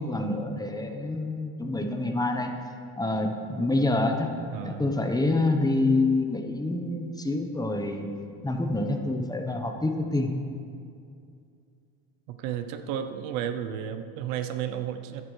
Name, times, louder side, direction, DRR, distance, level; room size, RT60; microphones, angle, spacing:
voice 1, 0.0-2.6 3.0-4.3 4.6-8.1 8.4-10.3, left 2 dB, 10° left, 4 dB, 1.0 m, -27 dB
voice 2, 4.5-4.9 12.3-15.2, right 9 dB, 80° right, 9 dB, 0.8 m, -33 dB
14.0 x 10.5 x 3.3 m, 2.4 s
supercardioid pair, 100°, 39 cm